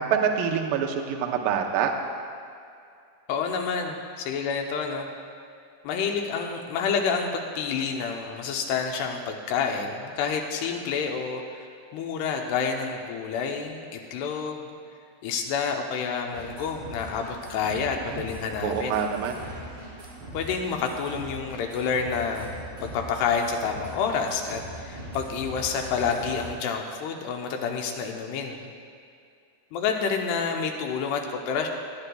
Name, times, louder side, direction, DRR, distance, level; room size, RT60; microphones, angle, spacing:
voice 1, 0.0-1.9 18.0-18.2 18.6-19.4, right 7 dB, 85° right, 2 dB, 2.0 m, -26 dB
voice 2, 3.3-5.1 5.8-11.7 11.9-14.8 15.2-19.0 20.3-28.7 29.7-31.7, left 6 dB, 80° left, 2 dB, 2.7 m, -29 dB
sound 1, 16.3-26.6, right 1 dB, 40° right, 3.4 m, -41 dB
20.5 x 9.6 x 2.3 m, 2.4 s
omnidirectional pair, 5.1 m